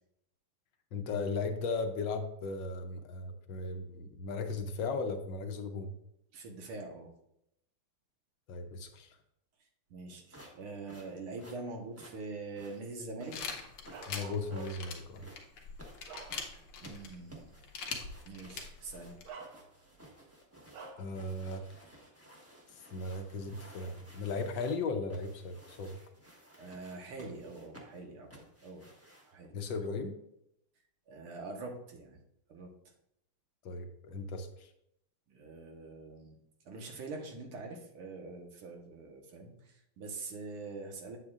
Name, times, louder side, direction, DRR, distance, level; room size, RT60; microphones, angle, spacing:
voice 1, 0.9-6.0 8.5-9.2 14.1-15.2 21.0-21.9 22.9-26.0 29.5-30.1 33.6-34.7, left 3 dB, 70° left, 6 dB, 1.4 m, -37 dB
voice 2, 6.3-7.1 9.9-13.7 16.8-17.5 18.3-19.1 26.6-28.8 29.2-29.5 31.1-32.2 32.5-32.7 35.3-36.4 36.7-41.2, right 3 dB, 85° right, 2 dB, 2.2 m, -44 dB
fabric movement fast (polyester), 10.3-29.5, equal, 10° right, 0.9 m, -55 dB
sound 1, 13.3-19.3, left 5 dB, 85° left, 1.9 m, -43 dB
Bark, 13.9-15.0 15.6-16.8 17.3-17.4 18.5-18.7 19.2-20.0 20.7-21.1, right 4 dB, 55° right, 1.2 m, -49 dB
8.1 x 8.0 x 2.4 m, 0.79 s
omnidirectional pair, 2.3 m